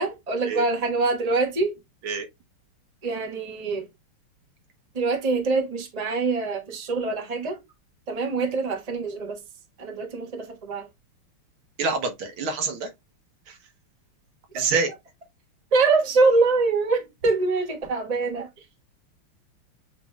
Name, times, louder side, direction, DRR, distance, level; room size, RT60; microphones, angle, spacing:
voice 1, 0.0-1.7 3.0-3.9 4.9-7.6 8.1-9.4 9.8-10.9 14.5-14.7 15.7-18.5, right 3 dB, 20° right, 1.1 m, -24 dB
voice 2, 11.8-12.9 13.5-13.6 14.5-14.9, right 4 dB, 75° right, 1.8 m, -26 dB
7.6 x 3.0 x 2.2 m
omnidirectional pair, 2.4 m